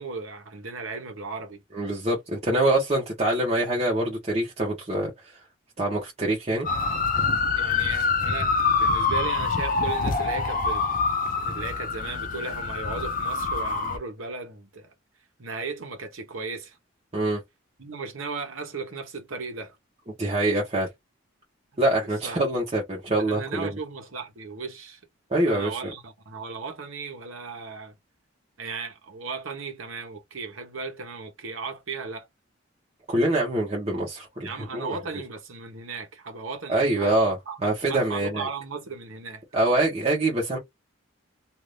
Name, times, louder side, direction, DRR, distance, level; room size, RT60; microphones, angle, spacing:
voice 1, 0.0-1.6 7.5-10.8 11.4-14.9 15.4-16.8 17.8-19.8 22.2-22.4 23.1-25.0 25.5-28.0 28.6-32.3 34.4-37.2 37.5-39.4, right 4 dB, 85° right, 1.1 m, -36 dB
voice 2, 1.7-5.1 5.8-6.7 17.1-17.4 20.2-20.9 21.8-23.7 25.3-25.9 33.1-35.0 36.7-38.5 39.5-40.6, right 1 dB, 30° right, 1.0 m, -25 dB
sound 1, 6.6-14.0, left 4 dB, 40° left, 0.6 m, -25 dB
2.7 x 2.6 x 3.3 m
head